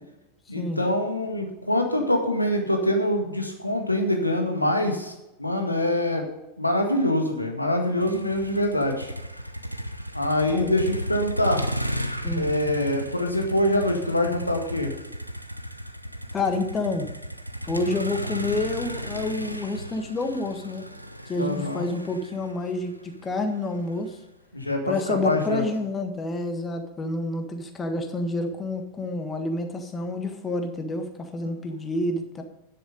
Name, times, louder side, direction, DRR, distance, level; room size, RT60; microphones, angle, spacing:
voice 1, 0.5-5.1 5.4-6.2 6.6-9.1 10.1-11.6 12.3-14.9 21.4-21.9 24.5-25.6 31.4-31.5, left 1 dB, 85° left, 3 dB, 1.7 m, -24 dB
Motor vehicle (road), 8.0-24.1, equal, 90° right, 0.7 m, -34 dB
voice 2, 16.3-17.1 17.7-20.9 21.3-24.2 24.9-32.4, left 2 dB, 20° left, 6 dB, 1.5 m, -28 dB
10.0 x 7.7 x 5.2 m, 0.95 s
figure-of-eight pair, 90°, 0 cm